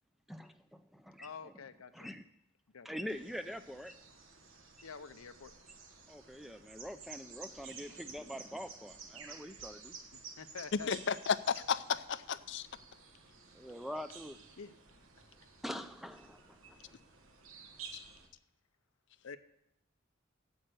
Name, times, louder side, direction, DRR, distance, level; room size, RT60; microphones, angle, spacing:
voice 1, 0.3-1.5 1.9-2.2 2.8-4.0 6.1-9.9 13.5-14.4 15.6-16.8, equal, ahead, 9 dB, 0.4 m, -44 dB
voice 2, 1.2-2.1 2.7-2.9 4.8-5.5 10.4-10.9 13.6-13.7 14.6-14.7 19.2-19.4, left 5 dB, 85° left, 10 dB, 0.7 m, -47 dB
sound 1, 3.1-18.3, right 5 dB, 75° right, 1.4 m, -53 dB
voice 3, 10.9-12.7 17.9-18.0, left 7 dB, 55° left, 15 dB, 0.5 m, -33 dB
8.7 x 7.9 x 7.9 m, 0.79 s
head